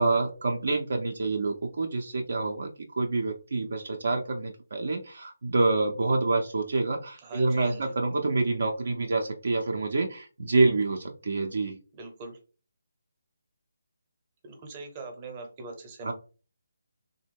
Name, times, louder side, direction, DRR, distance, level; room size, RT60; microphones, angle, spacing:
voice 1, 0.0-2.7 3.0-11.8 16.0-16.1, right 3 dB, 60° right, 3 dB, 0.4 m, -27 dB
voice 2, 7.2-7.9 11.9-12.4 14.4-16.1, right 3 dB, 25° right, 4 dB, 0.7 m, -42 dB
3.1 x 2.0 x 3.4 m, 0.36 s
figure-of-eight pair, 150°, 0 cm